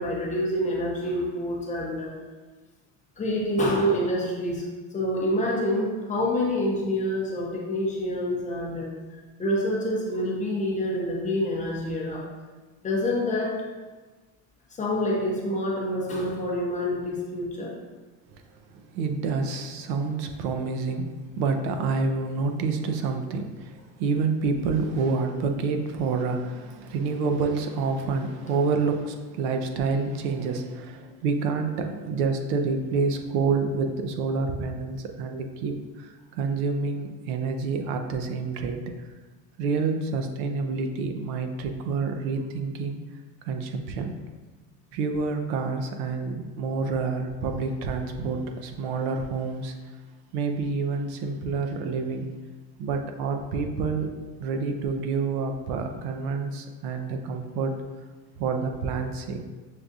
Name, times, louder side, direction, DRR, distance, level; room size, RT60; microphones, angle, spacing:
voice 1, 0.0-2.1 3.2-4.6 4.9-8.9 9.4-12.2 12.8-13.6 14.8-17.7, left 1 dB, 20° left, -3 dB, 0.5 m, -27 dB
voice 2, 18.7-38.8 39.6-43.0 43.4-44.1 44.9-49.8 50.3-52.3 52.8-54.1 54.4-57.8 58.4-59.5, right 4 dB, 90° right, 5 dB, 0.6 m, -28 dB
6.4 x 2.3 x 2.6 m, 1.3 s
cardioid pair, 155°, 42 cm